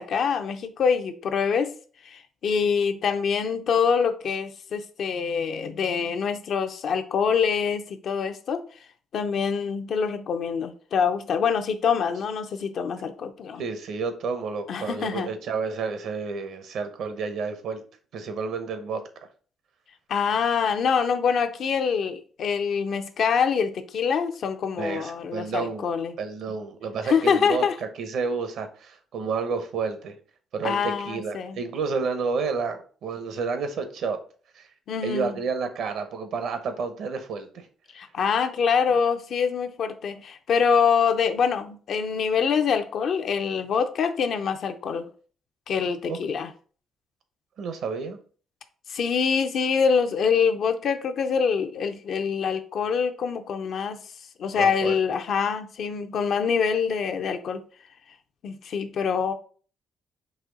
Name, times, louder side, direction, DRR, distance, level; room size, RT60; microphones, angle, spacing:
voice 1, 0.0-1.7 2.0-8.6 9.1-13.6 14.7-15.3 20.1-26.1 27.0-27.7 30.6-31.6 34.9-35.4 37.9-45.1 45.7-46.5 48.9-54.0 54.4-57.6 58.4-59.3, left 6 dB, 65° left, 0.5 m, -25 dB
voice 2, 13.6-17.8 18.1-19.0 24.8-25.9 26.2-27.6 28.0-30.2 30.5-34.2 34.5-34.7 35.0-37.7 46.1-46.2 47.6-48.2 54.5-55.0, right 5 dB, 75° right, 0.7 m, -30 dB
4.2 x 2.7 x 3.7 m
cardioid pair, 90°, 0 cm